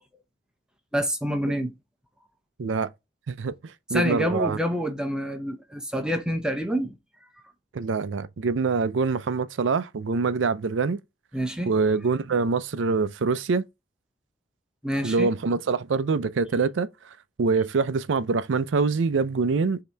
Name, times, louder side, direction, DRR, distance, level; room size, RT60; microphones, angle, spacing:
voice 1, 0.9-1.7 3.9-7.0 11.3-11.7 14.8-15.3, equal, 5° right, 0.6 m, -27 dB
voice 2, 2.6-2.9 3.3-4.6 7.7-11.0 11.7-13.6 15.0-19.8, right 4 dB, 70° right, 0.5 m, -25 dB
5.3 x 2.8 x 3.3 m
head